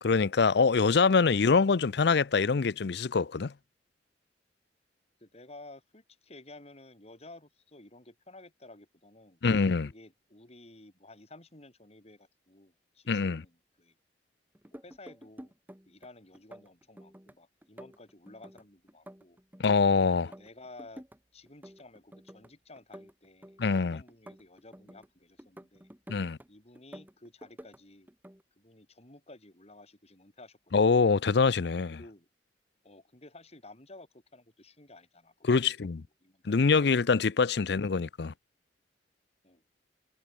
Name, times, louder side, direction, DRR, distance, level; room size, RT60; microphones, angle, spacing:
voice 1, 0.0-3.5 9.4-9.9 13.1-13.4 19.6-20.3 23.6-24.0 26.1-26.4 30.7-32.0 35.5-36.0 36.5-38.3, left 4 dB, 65° left, 0.6 m, -24 dB
voice 2, 5.2-9.4 9.9-13.9 14.7-15.5 15.9-19.4 20.2-21.0 21.3-25.9 26.5-28.1 28.6-30.8 31.7-32.3 32.8-35.9 36.2-36.9 39.4-39.6, left 2 dB, 35° left, 4.6 m, -53 dB
sound 1, 14.5-16.1 16.3-17.3 17.6-19.9 20.2-21.2 21.5-22.5 22.8-25.1 25.4-26.5 26.8-27.8 28.1-28.4, equal, 10° right, 1.9 m, -50 dB
head